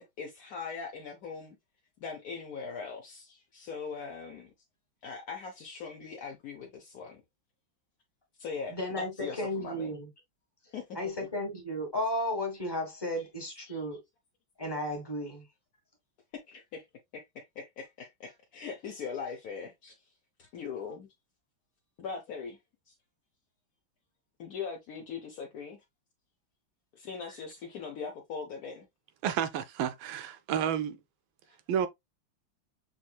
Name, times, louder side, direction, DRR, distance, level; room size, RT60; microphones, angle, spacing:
voice 1, 0.0-1.6 2.0-4.5 5.0-7.2 8.4-9.9 10.7-11.3 13.2-13.3 13.6-13.8 16.3-16.8 17.1-20.0 20.4-21.1 22.0-22.6 22.9-23.0 24.4-25.8 27.0-28.9, left 5 dB, 60° left, 1.0 m, -41 dB
voice 2, 8.7-10.1 10.9-14.0 14.6-15.5, left 1 dB, 15° left, 1.1 m, -34 dB
voice 3, 29.2-31.0 31.7-31.9, right 9 dB, 80° right, 1.3 m, -30 dB
6.3 x 3.1 x 2.2 m
omnidirectional pair, 2.2 m